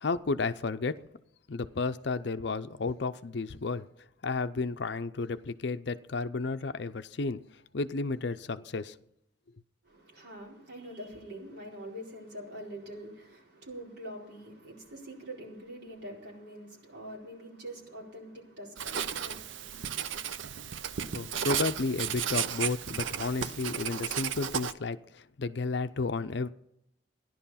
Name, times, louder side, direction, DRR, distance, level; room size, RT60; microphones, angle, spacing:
voice 1, 0.0-1.0 1.5-3.9 4.2-7.4 7.7-8.9 21.1-26.5, left 3 dB, 60° left, 0.6 m, -32 dB
voice 2, 9.9-20.0, right 1 dB, 60° right, 4.4 m, -45 dB
Writing, 18.8-24.7, right 8 dB, 75° right, 0.6 m, -34 dB
14.5 x 11.0 x 5.7 m
head